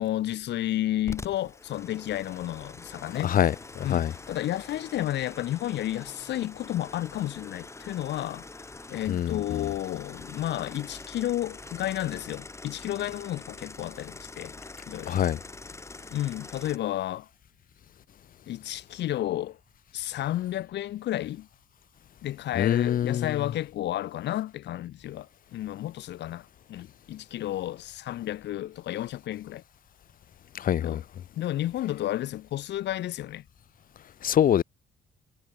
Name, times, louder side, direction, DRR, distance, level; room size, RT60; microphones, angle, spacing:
voice 1, 0.0-3.3 3.8-8.5 8.9-14.5 14.9-15.2 16.1-17.3 18.5-19.6 19.9-21.5 22.2-29.6 30.8-31.0 31.4-33.5, left 13 dB, 80° left, 5.2 m, -32 dB
sound 1, 1.1-16.8, left 3 dB, 15° left, 2.8 m, -44 dB
voice 2, 3.2-4.1 9.1-9.7 15.1-15.4 22.6-23.3 30.5-31.0 34.2-34.6, left 10 dB, 55° left, 1.0 m, -25 dB
cardioid pair, 130°, 18 cm